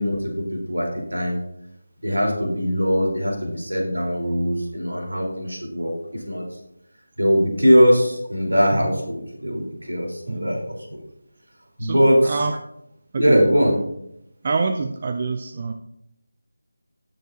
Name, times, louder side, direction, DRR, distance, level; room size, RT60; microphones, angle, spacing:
voice 1, 0.0-1.4 2.0-6.6 7.2-11.0 11.8-12.5 13.2-13.8, equal, 75° right, 0 dB, 3.8 m, -21 dB
voice 2, 11.8-12.6 13.1-13.4 14.4-15.7, right 4 dB, 30° right, 7 dB, 0.5 m, -26 dB
17.0 x 6.9 x 2.7 m, 0.77 s
figure-of-eight pair, 160°, 0 cm